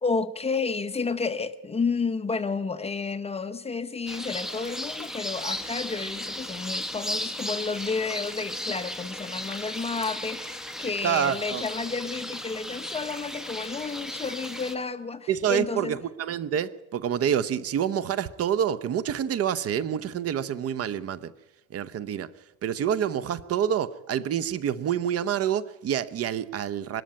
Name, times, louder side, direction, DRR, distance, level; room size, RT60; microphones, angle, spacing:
voice 1, 0.0-16.0, left 4 dB, 20° left, 0.9 m, -31 dB
sound 1, 4.1-14.7, left 1 dB, ahead, 1.6 m, -35 dB
voice 2, 11.0-11.6 15.3-21.3 21.7-22.3 22.6-27.0, right 9 dB, 45° right, 0.9 m, -27 dB
24.0 x 13.0 x 8.9 m
cardioid pair, 130°, 32 cm